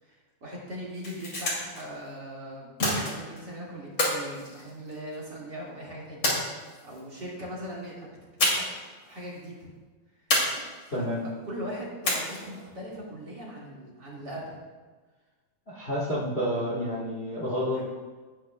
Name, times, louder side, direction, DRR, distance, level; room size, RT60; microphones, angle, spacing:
voice 1, 0.0-2.7 2.9-6.5 6.8-8.1 8.4-9.7 10.8-11.2 11.4-14.6 17.7-17.8, equal, 35° right, -5 dB, 2.1 m, -40 dB
sound 1, 0.8-1.8 2.8-3.4 4.0-5.2 6.2-7.0 8.4-8.9 9.1-9.2 10.3-11.0 12.0-12.6, left 1 dB, 35° left, 2.4 m, -28 dB
voice 2, 10.9-11.2 15.7-17.8, equal, 60° left, -6 dB, 0.6 m, -29 dB
16.0 x 9.1 x 2.3 m, 1.3 s
omnidirectional pair, 4.0 m